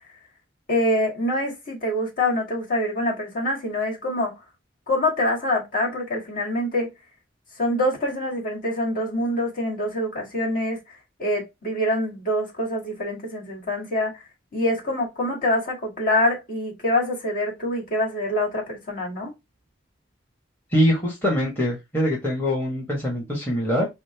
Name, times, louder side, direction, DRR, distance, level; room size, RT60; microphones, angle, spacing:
voice 1, 0.7-4.3 4.9-6.9 7.6-10.8 11.2-14.2 14.5-19.3, left 1 dB, 50° left, 1.9 m, -25 dB
voice 2, 20.7-23.9, equal, 10° left, 1.2 m, -23 dB
5.0 x 2.1 x 3.2 m
head